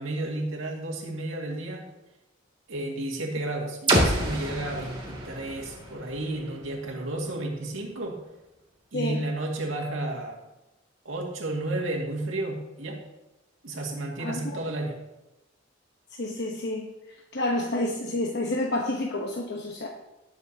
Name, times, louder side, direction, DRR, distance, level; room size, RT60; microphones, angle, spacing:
voice 1, 0.0-1.9 2.7-8.2 8.9-10.4 11.1-13.0 13.6-15.0, right 2 dB, 80° right, -1 dB, 2.1 m, -32 dB
sound 1, 3.9-7.7, right 1 dB, 25° right, 2.3 m, -29 dB
voice 2, 14.2-14.6 16.2-16.9 17.3-19.9, left 1 dB, 60° left, 0 dB, 1.0 m, -29 dB
18.0 x 7.1 x 2.8 m, 0.98 s
head